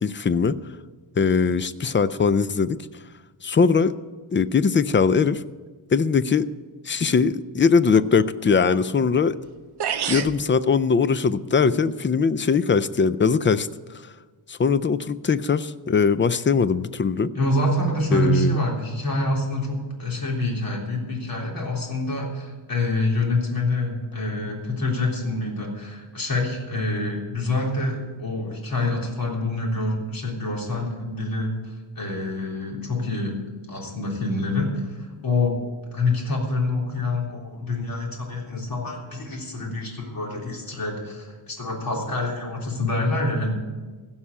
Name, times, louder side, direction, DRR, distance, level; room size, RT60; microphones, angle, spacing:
voice 1, 0.0-0.6 1.2-2.8 3.4-4.0 4.3-5.4 5.9-6.5 6.8-9.4 10.1-13.7 13.9-14.1 14.5-17.3 18.1-18.6, left 5 dB, 25° left, 15 dB, 0.4 m, -21 dB
sound 1, 9.4-9.5 9.8-10.4, right 8 dB, 55° right, 0.8 m, -26 dB
voice 2, 17.3-33.4 33.7-35.6 35.9-43.5, left 2 dB, 45° left, -1 dB, 3.5 m, -26 dB
16.0 x 5.7 x 8.6 m, 1.4 s
wide cardioid pair, 125°, 48 cm